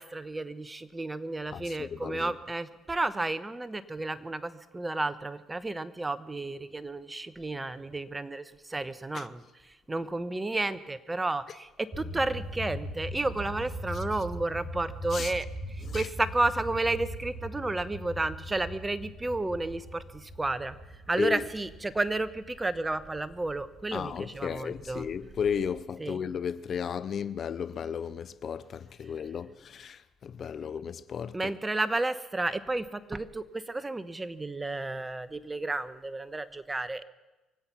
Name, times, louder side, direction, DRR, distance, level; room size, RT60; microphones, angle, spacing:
voice 1, 0.0-8.4 8.7-9.4 9.9-15.5 15.9-20.0 20.4-20.7 21.1-25.0 26.0-26.2 31.3-37.0, right 2 dB, 15° right, 1.0 m, -32 dB
voice 2, 1.5-2.3 9.1-9.3 15.1-15.3 15.9-16.1 21.2-21.4 23.9-31.4, left 7 dB, 50° left, 0.5 m, -34 dB
sound 1, 11.9-25.8, equal, 35° right, 2.3 m, -41 dB
24.5 x 8.7 x 6.1 m
supercardioid pair, 75°, 0 cm